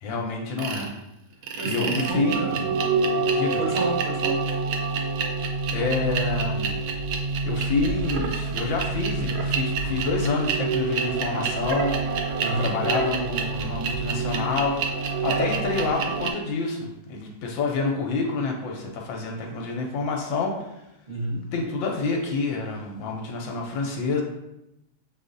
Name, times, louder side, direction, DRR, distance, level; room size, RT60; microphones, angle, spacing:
voice 1, 0.0-0.9 1.6-2.4 3.3-3.6 5.7-6.7 7.4-12.0 12.6-14.8 15.2-20.8 21.5-24.2, left 3 dB, 75° left, 1 dB, 1.2 m, -28 dB
sound 1, 0.6-0.9 1.4-16.3, right 4 dB, 75° right, 1.1 m, -27 dB
voice 2, 1.6-2.7 3.0-3.3 3.6-4.4 12.4-12.7 21.1-21.4, right 1 dB, 40° right, -9 dB, 0.6 m, -30 dB
6.5 x 2.4 x 2.5 m, 0.89 s
omnidirectional pair, 2.2 m